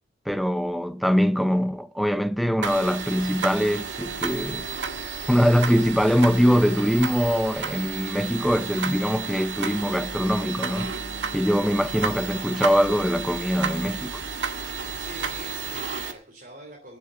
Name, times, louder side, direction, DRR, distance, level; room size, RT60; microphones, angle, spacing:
voice 1, 0.3-4.6 5.3-11.0 11.3-14.2, equal, ahead, 0.7 m, -23 dB
sound 1, 2.6-16.1, right 6 dB, 90° right, 1.8 m, -32 dB
sound 2, 4.0-9.2 9.5-15.8, equal, 90° left, 2.8 m, -44 dB
voice 2, 15.0-17.0, right 2 dB, 50° right, 3.2 m, -44 dB
11.5 x 8.1 x 8.9 m
head